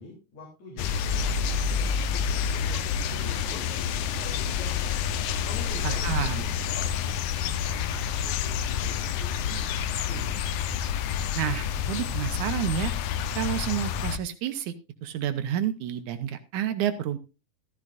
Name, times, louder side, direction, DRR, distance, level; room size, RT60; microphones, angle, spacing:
voice 1, 0.0-4.8 5.4-10.3, left 3 dB, 60° left, -1 dB, 4.5 m, -44 dB
sound 1, 0.8-14.2, left 7 dB, 80° left, 2.3 m, -28 dB
voice 2, 5.8-6.5 11.3-12.9 13.3-14.7 15.0-17.2, right 10 dB, 75° right, 10 dB, 2.3 m, -29 dB
14.5 x 14.0 x 2.5 m, 0.28 s
omnidirectional pair, 3.6 m